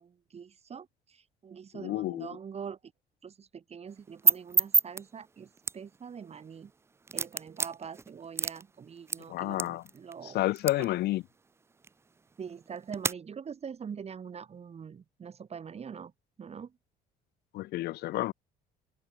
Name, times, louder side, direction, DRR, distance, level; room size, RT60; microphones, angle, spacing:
voice 1, 0.0-2.9 3.2-6.7 7.1-10.4 10.8-11.0 12.4-16.1 16.4-16.7, right 7 dB, 40° right, 5.0 m, -44 dB
voice 2, 1.7-2.3 9.3-9.8 10.2-11.2 17.5-18.3, left 16 dB, 75° left, 1.0 m, -30 dB
sound 1, 3.9-13.1, right 4 dB, 15° right, 0.3 m, -33 dB
cardioid pair, 110°, 17 cm